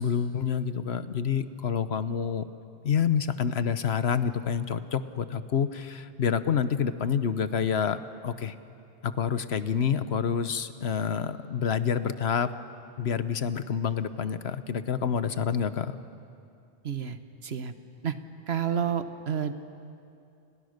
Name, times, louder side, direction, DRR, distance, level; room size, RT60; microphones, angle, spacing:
voice 1, 0.0-2.5 2.8-8.5 9.0-12.5 13.0-16.0, left 7 dB, 70° left, 12 dB, 1.2 m, -28 dB
voice 2, 16.8-17.7 18.0-18.1 18.5-19.5, right 8 dB, 70° right, 10 dB, 1.4 m, -30 dB
29.5 x 29.5 x 6.6 m, 2.5 s
omnidirectional pair, 1.1 m